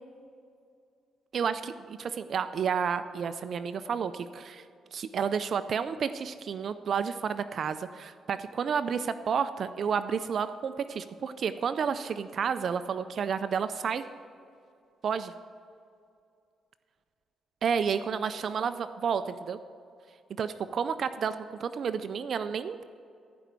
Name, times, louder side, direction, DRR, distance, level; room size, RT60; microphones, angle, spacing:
voice 1, 1.3-4.6 4.9-14.0 15.0-15.3 17.6-19.6 20.4-22.8, right 6 dB, 55° right, 11 dB, 0.4 m, -31 dB
15.0 x 5.1 x 8.2 m, 2.4 s
cardioid pair, 105°, 0 cm